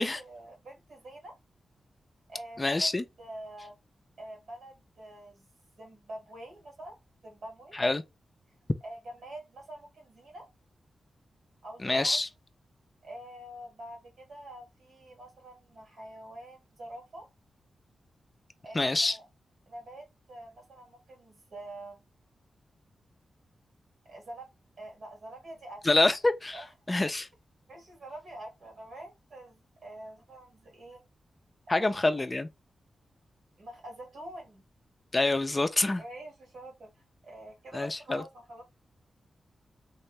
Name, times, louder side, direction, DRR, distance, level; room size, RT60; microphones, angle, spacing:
voice 1, 0.1-1.4 2.3-2.9 3.2-3.8 4.2-5.5 5.8-7.0 7.2-7.7 8.8-10.5 11.6-12.2 13.0-17.3 18.6-19.3 19.7-22.1 24.0-24.5 24.8-26.1 26.5-26.7 27.7-31.0 31.7-32.1 33.6-34.6 36.0-36.9 37.2-38.6, right 1 dB, 70° right, 1.9 m, -46 dB
voice 2, 2.6-3.0 7.7-8.0 11.8-12.3 18.7-19.2 25.8-26.6 26.9-27.3 31.7-32.5 35.1-36.0 37.7-38.2, left 2 dB, 25° left, 0.4 m, -26 dB
3.5 x 2.9 x 3.2 m
wide cardioid pair, 115°, 0 cm